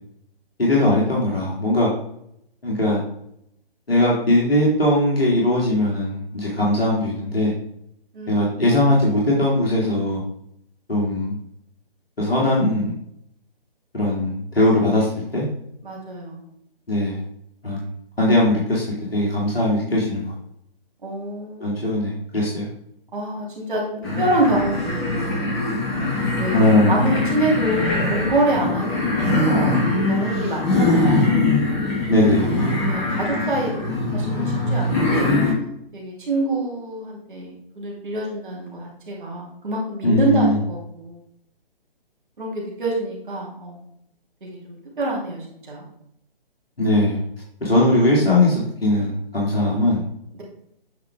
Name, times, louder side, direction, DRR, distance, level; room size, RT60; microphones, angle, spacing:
voice 1, 0.6-1.9 2.6-3.0 3.9-7.5 8.3-10.2 10.9-11.4 12.2-12.9 13.9-15.5 16.9-17.2 17.6-17.9 18.2-18.8 19.1-20.3 21.6-22.7 26.5-27.0 32.1-32.6 40.0-40.6 46.8-47.2 47.6-50.0, left 1 dB, 75° left, -5 dB, 2.2 m, -19 dB
voice 2, 15.8-16.4 21.0-21.8 23.1-25.7 26.4-29.3 30.0-31.7 32.9-35.3 35.9-41.2 42.4-43.9 44.4-45.9 50.3-50.4, right 2 dB, 55° right, -3 dB, 2.4 m, -26 dB
sound 1, 24.0-35.5, left 2 dB, 25° left, 2.0 m, -22 dB
8.1 x 4.7 x 3.5 m, 0.75 s
figure-of-eight pair, 140°, 30 cm